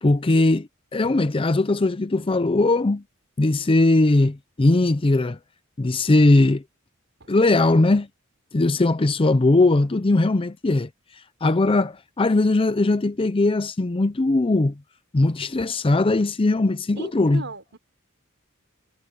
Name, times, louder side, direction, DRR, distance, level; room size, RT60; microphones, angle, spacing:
voice 1, 0.0-3.0 3.4-5.4 5.8-6.6 7.3-8.1 8.5-10.9 11.4-14.7 15.1-17.4, left 2 dB, 25° left, 0.6 m, -19 dB
voice 2, 16.9-17.8, right 2 dB, 60° right, 6.1 m, -37 dB
head